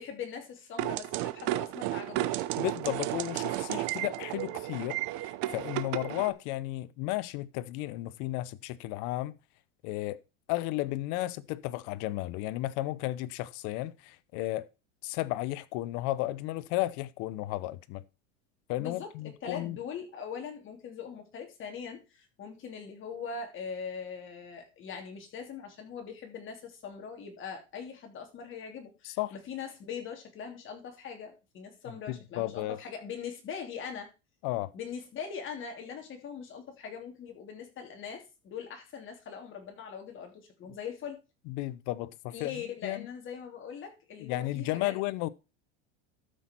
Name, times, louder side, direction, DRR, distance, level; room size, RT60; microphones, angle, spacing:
voice 1, 0.0-2.4 18.8-19.1 19.4-34.1 34.7-41.2 42.3-44.9, left 6 dB, 35° left, 3.0 m, -41 dB
sound 1, 0.8-6.3, right 16 dB, 60° right, 0.9 m, -33 dB
voice 2, 2.6-9.4 9.8-10.2 10.5-14.7 15.0-18.0 18.7-19.8 29.0-29.4 31.9-32.8 34.4-34.7 41.5-43.1 44.2-45.3, left 17 dB, 60° left, 0.7 m, -34 dB
13.0 x 6.1 x 4.5 m
supercardioid pair, 135°, 34 cm